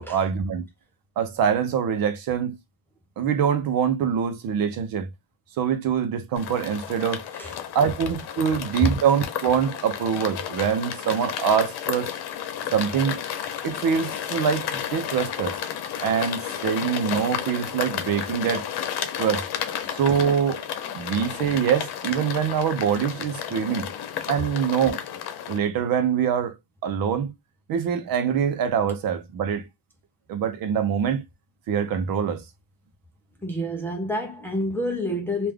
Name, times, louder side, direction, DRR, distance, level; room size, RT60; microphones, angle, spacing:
voice 1, 0.1-0.6 1.2-2.6 3.2-5.1 5.6-7.2 7.7-12.1 12.7-13.2 13.6-15.6 16.0-18.7 19.2-19.4 19.9-20.6 20.9-23.9 24.3-25.0 25.5-26.5 26.8-27.3 27.7-29.6 30.3-31.2 31.7-32.4, right 8 dB, 60° right, 0.8 m, -24 dB
sound 1, 6.3-25.6, left 9 dB, 85° left, 0.8 m, -32 dB
voice 2, 33.4-35.5, left 1 dB, 5° left, 0.5 m, -28 dB
3.5 x 2.5 x 3.4 m
cardioid pair, 180°, 38 cm